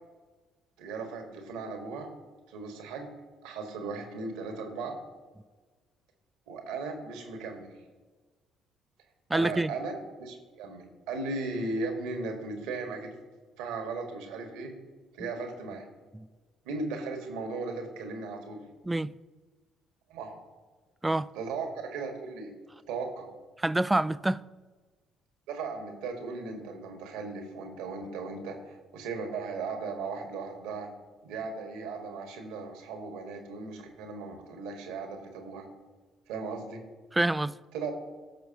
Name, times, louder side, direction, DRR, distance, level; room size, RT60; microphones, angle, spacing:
voice 1, 0.8-2.1 2.5-3.1 3.4-4.9 6.5-7.7 9.3-13.1 13.6-14.7 15.2-15.9 16.6-18.6 20.1-20.3 21.3-22.5 22.9-23.3 25.5-30.9 31.2-35.7 36.3-36.8 37.7-37.9, right 3 dB, 70° right, 1.6 m, -37 dB
voice 2, 9.3-9.7 16.1-16.3 18.9-19.2 21.0-21.3 23.6-24.4 37.1-37.6, right 2 dB, 15° right, 0.4 m, -27 dB
16.5 x 6.6 x 2.9 m
hypercardioid pair, 50°, 0 cm